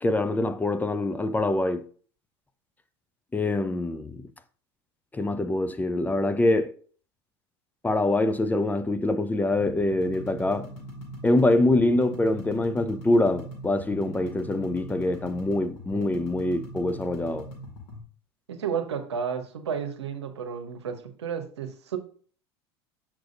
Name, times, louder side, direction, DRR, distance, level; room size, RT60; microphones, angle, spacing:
voice 1, 0.0-1.9 3.3-4.2 5.1-6.7 7.8-10.7 11.2-17.5, left 2 dB, 10° left, 0.4 m, -24 dB
sound 1, 9.5-18.0, right 1 dB, 55° left, 2.4 m, -41 dB
voice 2, 18.5-22.0, right 7 dB, 85° right, 0.9 m, -32 dB
6.2 x 5.9 x 2.5 m
hypercardioid pair, 85°, 14 cm